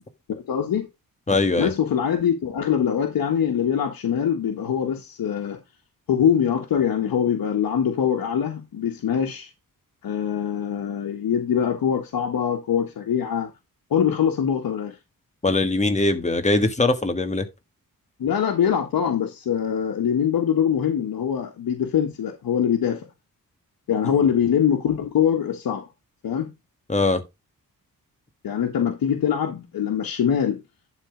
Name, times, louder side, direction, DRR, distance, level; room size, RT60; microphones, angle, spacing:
voice 1, 0.5-0.9 1.6-5.6 6.1-9.5 10.0-13.5 13.9-15.0 18.2-23.1 23.9-25.9 26.2-26.5 28.4-30.6, left 8 dB, 85° left, 1.5 m, -23 dB
voice 2, 1.3-1.7 15.4-17.4 24.1-24.2 26.9-27.2, left 2 dB, 20° left, 1.6 m, -21 dB
11.5 x 3.9 x 5.0 m
wide cardioid pair, 115°, 34 cm